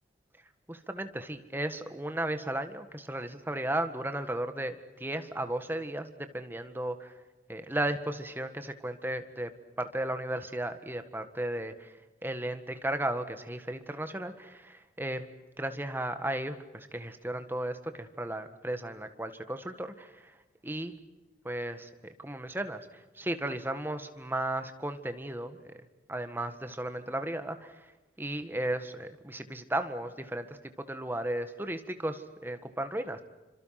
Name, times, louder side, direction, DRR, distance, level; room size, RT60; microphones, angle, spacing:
voice 1, 0.7-7.1 7.5-9.5 9.8-11.9 12.2-15.3 15.6-20.4 20.6-21.0 21.5-25.7 26.1-27.9 28.2-33.2, right 1 dB, 10° right, 9 dB, 1.6 m, -35 dB
28.5 x 26.0 x 5.9 m, 1.1 s
head